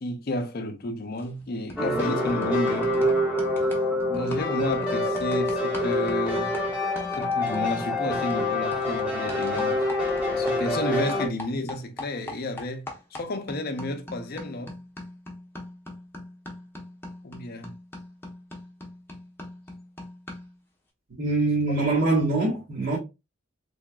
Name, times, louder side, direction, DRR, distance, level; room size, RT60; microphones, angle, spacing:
voice 1, 0.0-3.1 4.1-6.6 7.2-9.9 10.3-12.9 13.2-14.8 17.2-17.7, left 1 dB, 45° left, 0.5 m, -31 dB
sound 1, 1.2-1.4 1.7-10.8 11.1-20.6, left 1 dB, 10° left, 0.8 m, -42 dB
sound 2, 1.8-11.3, left 1 dB, 5° right, 1.2 m, -26 dB
voice 2, 21.2-23.0, right 2 dB, 60° right, 1.4 m, -23 dB
3.7 x 3.3 x 2.3 m
head